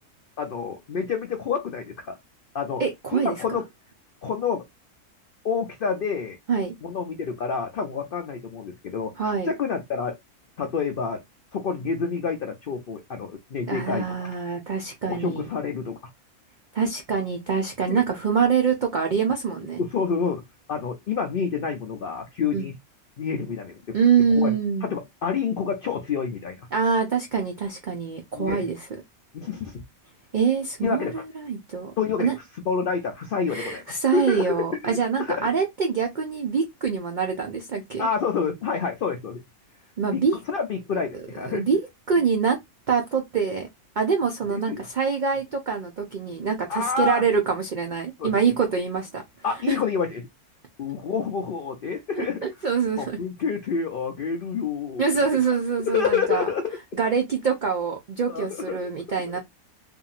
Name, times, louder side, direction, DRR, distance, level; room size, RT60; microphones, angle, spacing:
voice 1, 0.4-2.2 2.5-2.8 3.1-3.6 4.2-4.6 5.4-6.4 6.8-9.1 9.5-10.2 10.6-11.2 11.5-14.3 15.1-16.0 17.9-18.0 19.8-20.4 20.7-22.8 23.2-23.9 24.3-26.7 28.3-28.7 29.3-29.8 30.8-31.2 32.0-32.3 32.7-35.5 38.0-39.4 40.1-41.7 44.5-44.9 46.7-47.2 48.2-48.3 49.4-50.3 50.8-52.5 53.0-55.0 55.3-55.4 55.9-56.8 58.3-58.8 59.3-59.4, left 6 dB, 85° left, 0.4 m, -28 dB
voice 2, 2.8-3.4 6.5-6.7 9.2-9.5 13.7-15.5 16.7-19.8 22.5-22.7 23.9-24.9 26.7-28.9 30.3-31.9 32.2-32.3 33.5-38.1 40.0-40.4 41.5-41.8 42.1-42.6 42.9-43.7 44.0-49.2 49.7-49.8 52.2-53.2 55.0-56.5 57.0-59.4, right 6 dB, 85° right, 0.4 m, -25 dB
2.8 x 2.6 x 2.4 m
omnidirectional pair, 1.6 m